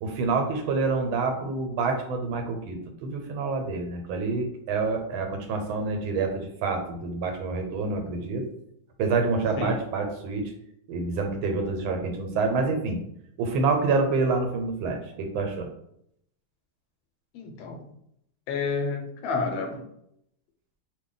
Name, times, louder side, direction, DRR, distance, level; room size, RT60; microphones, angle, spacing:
voice 1, 0.0-8.4 9.0-10.5 10.9-13.0 13.4-15.7, right 4 dB, 80° right, 4 dB, 1.4 m, -27 dB
voice 2, 17.3-17.9 18.5-19.8, left 4 dB, 80° left, 3 dB, 1.4 m, -30 dB
3.1 x 2.3 x 3.8 m, 0.73 s
omnidirectional pair, 2.2 m